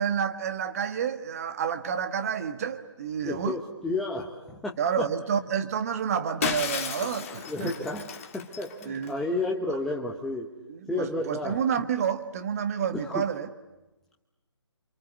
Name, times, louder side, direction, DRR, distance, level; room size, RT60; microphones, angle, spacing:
voice 1, 0.0-3.6 4.8-7.7 8.8-9.1 9.7-9.8 10.7-13.5, right 8 dB, 30° right, 1.5 m, -29 dB
voice 2, 3.2-5.1 7.5-10.5 10.9-11.6 13.0-13.2, left 2 dB, ahead, 1.0 m, -32 dB
Shatter, 6.4-9.1, left 7 dB, 30° left, 1.6 m, -33 dB
28.0 x 26.0 x 8.2 m
figure-of-eight pair, 150°, 15 cm